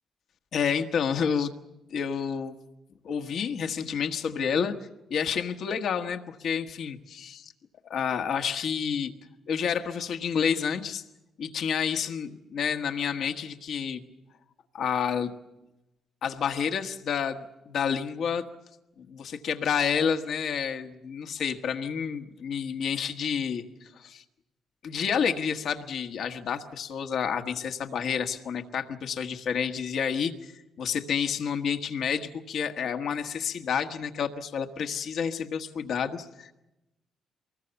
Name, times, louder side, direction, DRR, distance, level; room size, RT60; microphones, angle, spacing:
voice 1, 0.5-1.5 1.9-2.6 3.0-4.7 5.1-7.5 7.9-9.1 9.5-11.0 11.4-14.0 14.7-15.3 16.2-18.4 19.0-24.2 24.8-36.5, left 7 dB, 65° left, 6 dB, 1.4 m, -29 dB
24.5 x 20.0 x 7.0 m, 0.96 s
cardioid pair, 90°, 0 cm